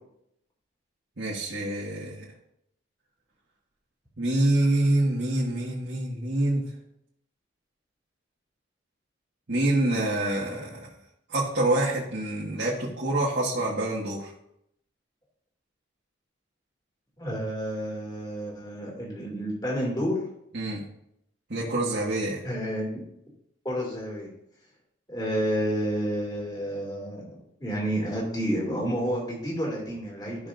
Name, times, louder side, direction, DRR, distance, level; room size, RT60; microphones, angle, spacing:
voice 1, 1.2-2.3 4.2-6.6 9.5-10.9 11.3-14.3 20.5-20.8 21.5-22.4, right 1 dB, 65° right, -6 dB, 1.6 m, -26 dB
voice 2, 17.2-20.4 22.4-23.0 23.6-24.3 25.1-30.5, equal, 20° left, -3 dB, 2.4 m, -30 dB
13.5 x 6.0 x 2.6 m, 0.76 s
head